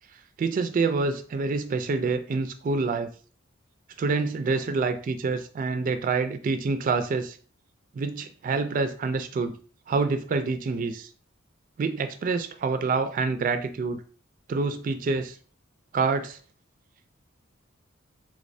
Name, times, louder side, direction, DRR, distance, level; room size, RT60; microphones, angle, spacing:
voice 1, 0.4-3.1 4.0-7.4 7.9-9.6 9.9-11.1 11.8-14.0 14.5-15.4 15.9-16.4, right 4 dB, 45° right, 8 dB, 0.3 m, -27 dB
3.5 x 3.1 x 2.6 m, 0.41 s
head